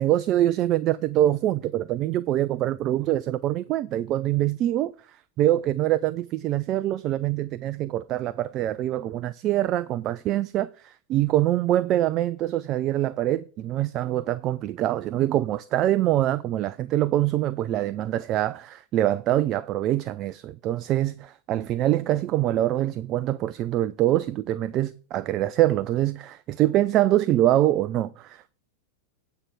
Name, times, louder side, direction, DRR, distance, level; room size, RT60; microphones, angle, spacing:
voice 1, 0.0-4.9 5.4-28.5, right 13 dB, 35° right, 0.3 m, -24 dB
8.8 x 4.6 x 6.7 m
figure-of-eight pair, 90°, 0 cm